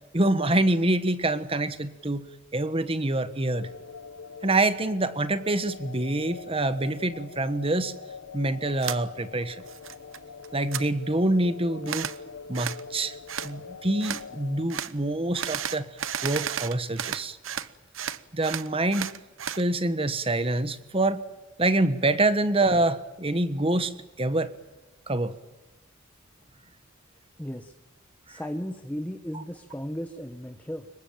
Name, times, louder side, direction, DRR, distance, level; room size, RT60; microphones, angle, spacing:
voice 1, 0.1-2.2 2.5-3.7 4.4-7.9 8.3-9.6 10.5-12.1 12.5-13.2 13.4-15.9 16.2-17.4 18.3-19.1 19.5-21.2 21.6-23.9 24.2-24.5 25.1-25.3, right 2 dB, 30° right, 12 dB, 1.3 m, -26 dB
sound 1, 3.5-14.7, left 5 dB, 90° left, 1.3 m, -43 dB
sound 2, 8.8-9.0 9.4-10.2 10.4-10.8 11.9-12.2 12.5-12.8 13.3-13.5 14.0-14.2 14.7-14.9 15.3-17.7 17.9-19.6, right 9 dB, 85° right, 1.0 m, -33 dB
voice 2, 27.4-27.7 28.3-30.9, equal, 10° left, 7 dB, 1.2 m, -35 dB
26.0 x 22.5 x 9.0 m, 1.1 s
head